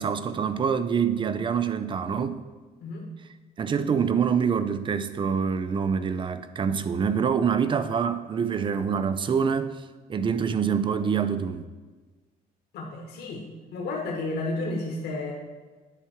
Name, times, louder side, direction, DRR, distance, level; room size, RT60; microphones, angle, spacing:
voice 1, 0.0-2.4 3.6-9.8 10.1-11.7, right 6 dB, 30° right, 12 dB, 0.4 m, -26 dB
voice 2, 12.7-13.4 13.7-15.3, left 2 dB, 75° left, -1 dB, 1.4 m, -31 dB
9.9 x 3.6 x 4.5 m, 1.3 s
cardioid pair, 110°, 17 cm